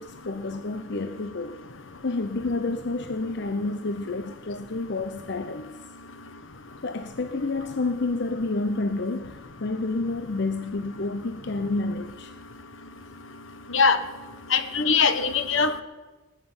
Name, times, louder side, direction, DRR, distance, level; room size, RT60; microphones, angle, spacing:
voice 1, 0.0-1.6 2.0-5.8 6.8-12.3, left 3 dB, 60° left, 9 dB, 0.7 m, -29 dB
voice 2, 14.5-15.8, left 5 dB, 80° left, 12 dB, 1.2 m, -21 dB
19.0 x 6.7 x 9.6 m, 1.2 s
head